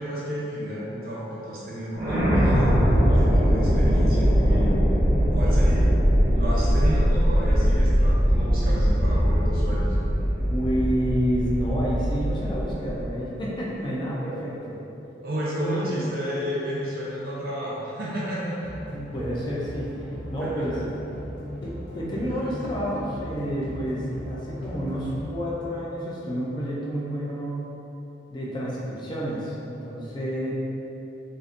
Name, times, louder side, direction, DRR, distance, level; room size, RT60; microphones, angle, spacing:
voice 1, 0.0-2.8 3.1-4.8 5.3-5.9 6.3-10.0 15.2-18.9 20.4-20.6, equal, 55° right, -7 dB, 0.6 m, -31 dB
sound 1, 1.9-13.0, equal, 15° right, 0.8 m, -21 dB
voice 2, 10.5-14.8 15.5-15.9 18.9-19.9 20.3-20.7 21.6-27.7 28.3-30.5, equal, 25° left, -6 dB, 0.5 m, -29 dB
sound 2, 18.6-25.3, left 1 dB, 85° left, 0.6 m, -37 dB
3.8 x 2.5 x 2.5 m, 3.0 s
head